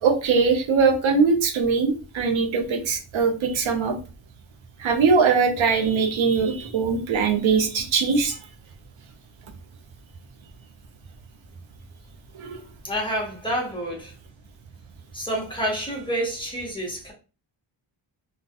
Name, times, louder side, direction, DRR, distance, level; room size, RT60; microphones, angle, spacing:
voice 1, 0.0-3.9 4.8-8.4 12.4-12.6, right 5 dB, 80° right, 0.7 m, -21 dB
voice 2, 12.8-14.1 15.1-17.1, right 1 dB, 10° left, 0.8 m, -28 dB
2.3 x 2.2 x 2.5 m
wide cardioid pair, 150°, 46 cm